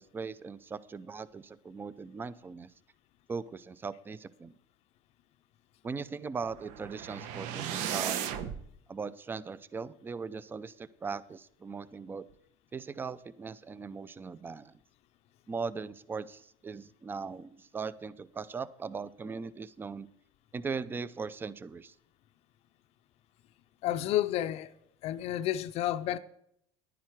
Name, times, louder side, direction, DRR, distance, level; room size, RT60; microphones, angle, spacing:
voice 1, 0.0-2.7 3.3-4.5 5.8-8.3 8.9-12.2 12.7-14.8 15.5-20.1 20.5-21.9, right 5 dB, 15° right, 0.4 m, -39 dB
sound 1, 6.4-8.6, right 9 dB, 65° right, 1.0 m, -35 dB
voice 2, 23.8-24.7 25.0-26.2, left 13 dB, 50° left, 0.5 m, -30 dB
10.5 x 10.0 x 4.6 m
cardioid pair, 135°, 13 cm